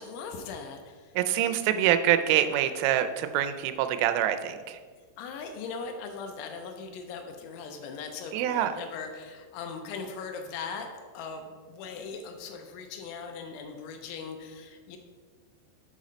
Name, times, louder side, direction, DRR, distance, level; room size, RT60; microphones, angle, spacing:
voice 1, 0.0-1.1 5.0-15.0, left 5 dB, 80° left, 5 dB, 2.9 m, -39 dB
voice 2, 1.2-4.8 8.3-8.7, right 11 dB, 90° right, 9 dB, 3.1 m, -25 dB
7.2 x 4.1 x 5.0 m, 1.5 s
omnidirectional pair, 5.6 m